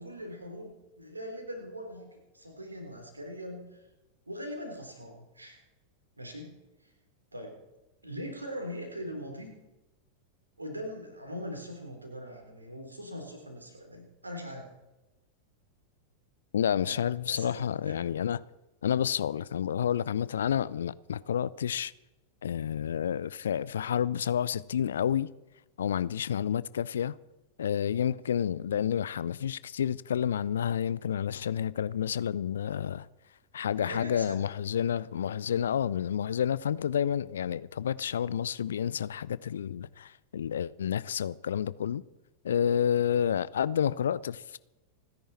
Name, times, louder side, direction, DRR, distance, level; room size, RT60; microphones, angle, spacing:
voice 1, 0.0-3.9 4.3-5.6 6.2-6.5 6.8-6.9 7.3-7.6 8.0-9.5 10.6-14.7 16.8-17.5 17.9-18.0 33.8-34.4, equal, 80° right, 3.8 m, -41 dB
voice 2, 16.5-18.4 18.8-21.9 22.4-25.3 25.8-27.1 27.6-33.1 33.5-42.0 42.4-44.6, left 9 dB, 65° left, 0.5 m, -29 dB
29.0 x 10.5 x 4.3 m
figure-of-eight pair, 90°, 0 cm